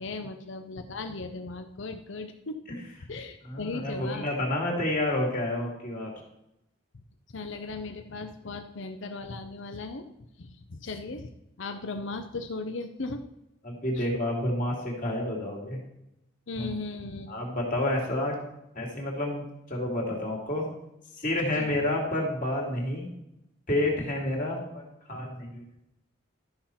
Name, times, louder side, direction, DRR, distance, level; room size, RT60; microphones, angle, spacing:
voice 1, 0.0-2.6 3.1-4.3 7.3-10.0 10.4-11.3 11.6-13.2 13.9-14.1 16.5-17.3 21.5-21.8, left 3 dB, 65° left, 7 dB, 0.7 m, -37 dB
voice 2, 3.4-6.1 13.6-15.8 16.6-16.7 17.3-18.4 18.7-20.6 21.2-23.1 23.7-24.8 25.1-25.6, left 1 dB, 40° left, -1 dB, 2.3 m, -29 dB
12.5 x 5.8 x 4.3 m, 0.86 s
head